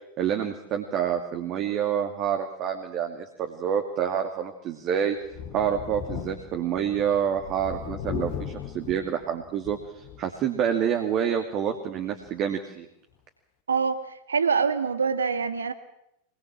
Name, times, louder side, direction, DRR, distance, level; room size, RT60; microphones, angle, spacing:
voice 1, 0.2-5.2 5.5-12.9, right 8 dB, 35° right, 4 dB, 2.5 m, -28 dB
Thunder, 5.2-10.4 10.8-10.9 12.2-12.3, left 8 dB, 40° left, 2.4 m, -38 dB
voice 2, 13.7-15.7, right 5 dB, 70° right, 10 dB, 1.7 m, -25 dB
24.5 x 20.5 x 7.5 m, 0.78 s
figure-of-eight pair, 90°, 0 cm